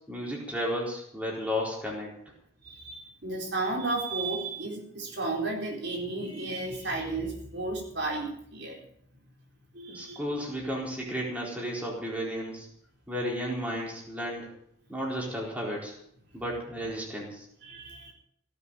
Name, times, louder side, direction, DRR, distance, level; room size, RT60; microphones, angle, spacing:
voice 1, 0.1-2.1 9.9-12.7 13.1-14.5 14.9-15.9 16.3-17.5, equal, 5° right, -3 dB, 4.3 m, -33 dB
voice 2, 2.6-8.8 9.7-10.4 17.6-18.1, right 2 dB, 55° right, 0 dB, 4.3 m, -33 dB
17.5 x 8.4 x 9.3 m, 0.69 s
head